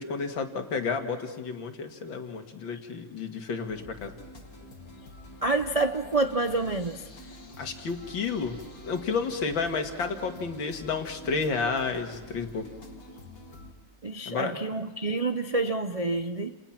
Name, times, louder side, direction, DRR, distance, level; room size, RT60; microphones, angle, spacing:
voice 1, 0.0-4.1 7.6-8.6 8.8-12.6 14.3-14.5, left 5 dB, 85° left, 2.7 m, -31 dB
sound 1, 3.7-13.7, left 1 dB, 50° left, 3.0 m, -47 dB
voice 2, 5.4-7.1 14.0-16.5, right 2 dB, 55° right, 0.4 m, -28 dB
30.0 x 28.5 x 5.9 m
omnidirectional pair, 2.0 m